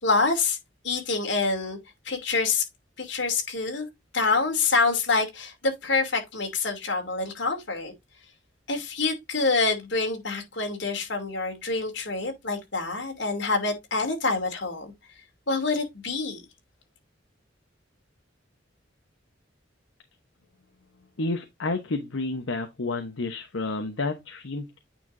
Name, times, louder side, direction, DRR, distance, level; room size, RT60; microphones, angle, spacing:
voice 1, 0.0-0.6 0.8-1.8 2.0-2.6 3.0-3.9 4.1-7.9 8.7-14.9 15.5-16.4, left 3 dB, 65° left, 2.7 m, -26 dB
voice 2, 21.2-24.8, left 2 dB, 80° left, 0.9 m, -30 dB
9.1 x 5.7 x 2.6 m
head